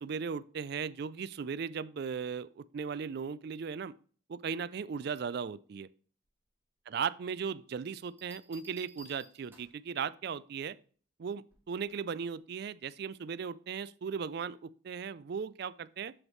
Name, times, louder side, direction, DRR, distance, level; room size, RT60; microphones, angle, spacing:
voice 1, 0.0-3.9 4.3-5.9 6.9-10.8 11.2-16.1, right 6 dB, 50° right, 0.3 m, -37 dB
sound 1, 7.9-9.9 11.5-11.8, right 2 dB, 10° right, 1.4 m, -56 dB
7.9 x 7.2 x 3.1 m
head